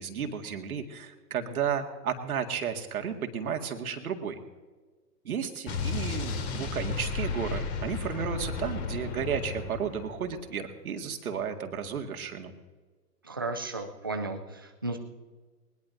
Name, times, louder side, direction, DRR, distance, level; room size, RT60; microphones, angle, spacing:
voice 1, 0.0-4.4 5.2-12.5, right 7 dB, 60° right, 4 dB, 2.0 m, -33 dB
Explosion, 5.7-10.4, left 4 dB, 40° left, 3.2 m, -33 dB
voice 2, 13.2-15.0, right 2 dB, 15° right, 4 dB, 0.4 m, -34 dB
20.5 x 20.0 x 2.6 m, 1.4 s
hypercardioid pair, 130°, 48 cm